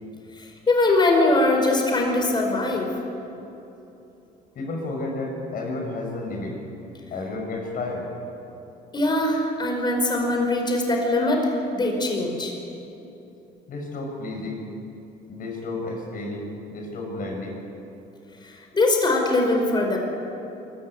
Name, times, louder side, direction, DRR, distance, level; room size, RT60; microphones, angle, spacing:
voice 1, 0.4-2.9 8.9-12.5 18.4-20.0, left 2 dB, 25° left, 1 dB, 5.1 m, -22 dB
voice 2, 4.5-6.6 7.1-8.1 13.7-14.7 15.3-17.6, left 2 dB, 55° left, 1 dB, 6.8 m, -31 dB
23.0 x 15.0 x 9.5 m, 3.0 s
cardioid pair, 110°, 17 cm